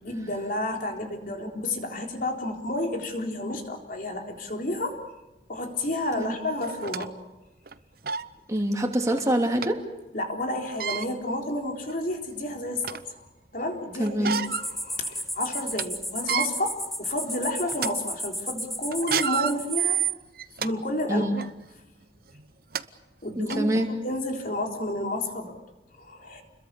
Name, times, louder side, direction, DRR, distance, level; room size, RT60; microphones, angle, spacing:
voice 1, 0.0-5.0 5.5-7.1 10.1-13.3 13.5-20.0 20.6-21.3 23.2-25.5 25.9-26.4, left 1 dB, 50° left, 2 dB, 3.9 m, -31 dB
sound 1, 5.9-6.0 6.6-7.1 7.7-7.8 8.0-8.3 9.6-9.7 10.6-11.1 11.8-11.9 12.4-13.1 14.1-14.7 15.1-15.2 15.6-15.8 16.2-16.5 17.1-17.3 17.7-17.9 18.9-20.7 21.3-21.5 22.4-22.5 22.7-22.8 23.5-23.6, right 8 dB, 55° right, 0.8 m, -29 dB
voice 2, 8.5-9.8 14.0-14.4 21.1-21.3 23.4-23.9, right 1 dB, 20° right, 1 dB, 2.8 m, -25 dB
sound 2, 14.4-19.8, equal, ahead, 0.8 m, -34 dB
29.5 x 22.0 x 7.0 m, 0.99 s
head